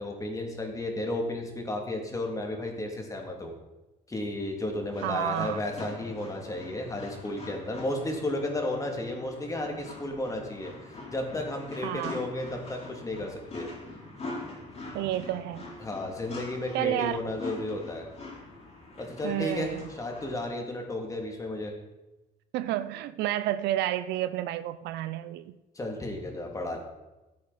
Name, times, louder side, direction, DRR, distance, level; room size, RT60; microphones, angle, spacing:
voice 1, 0.0-3.5 4.1-13.7 15.8-18.1 19.0-21.7 25.7-26.8, left 1 dB, 20° left, 2 dB, 2.6 m, -33 dB
sound 1, 4.9-20.4, left 2 dB, 40° left, 4.3 m, -44 dB
voice 2, 5.0-5.6 11.8-12.2 14.9-15.7 16.7-17.2 19.2-19.8 22.5-25.6, right 13 dB, 85° right, 14 dB, 0.6 m, -30 dB
15.0 x 8.6 x 4.2 m, 1.0 s
cardioid pair, 110°, 17 cm